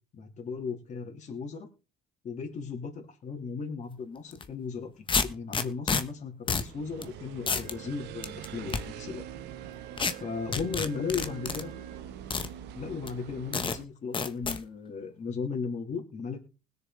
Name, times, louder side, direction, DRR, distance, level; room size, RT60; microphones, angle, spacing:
voice 1, 0.1-1.7 2.2-9.2 10.2-11.7 12.7-16.4, left 5 dB, 45° left, 1 dB, 3.3 m, -36 dB
sound 1, 4.3-4.5 5.1-6.0 6.5-6.7 7.0-7.1 7.5-7.7 8.2-8.8 10.0-10.1 10.5-11.6 12.3-12.5 13.1-13.2 13.5-13.8 14.1-14.6, left 5 dB, 30° left, 1.1 m, -28 dB
sound 2, 6.5-13.8, right 9 dB, 85° right, 1.2 m, -44 dB
Wind instrument woodwind instrument, 7.6-12.1, right 16 dB, 55° right, 1.3 m, -49 dB
20.0 x 6.9 x 3.9 m, 0.32 s
cardioid pair, 110°, 17 cm